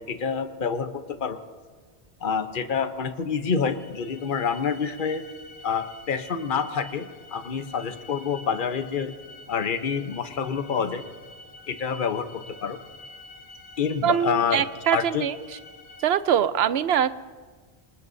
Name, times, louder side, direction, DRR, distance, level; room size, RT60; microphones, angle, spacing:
voice 1, 0.1-1.4 2.2-5.2 5.6-9.1 9.5-11.0 11.7-12.8 13.8-14.6 14.9-15.2, left 6 dB, 50° left, 9 dB, 1.0 m, -27 dB
sound 1, 3.5-16.2, left 2 dB, 70° left, 1.5 m, -47 dB
voice 2, 14.0-15.4 16.0-17.2, right 9 dB, 70° right, 14 dB, 0.9 m, -23 dB
27.0 x 20.0 x 2.7 m, 1.5 s
omnidirectional pair, 1.1 m